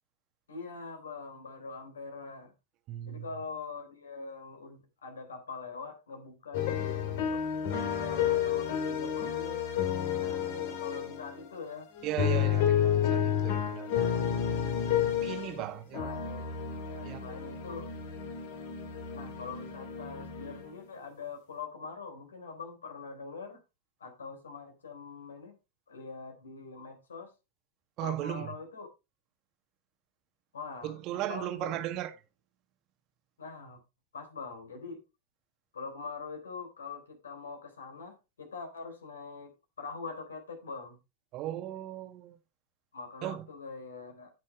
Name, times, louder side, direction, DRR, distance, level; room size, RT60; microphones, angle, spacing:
voice 1, 0.5-2.5 3.0-9.6 10.2-11.9 16.0-16.4 16.8-17.9 19.1-23.6 24.0-25.6 25.9-27.3 28.0-28.9 30.5-31.0 31.3-31.9 33.4-33.8 34.1-35.0 35.7-39.5 39.8-41.0 42.9-44.3, left 4 dB, 70° left, 3.7 m, -43 dB
voice 2, 2.9-3.3 12.0-14.3 15.2-16.1 17.0-17.2 28.0-28.5 30.8-32.1 41.3-42.4 43.2-43.4, right 13 dB, 40° right, 1.6 m, -36 dB
sound 1, 6.5-11.4 12.0-15.7 15.9-20.8, left 9 dB, 50° left, 2.4 m, -31 dB
14.5 x 6.4 x 3.3 m
figure-of-eight pair, 90°, 0 cm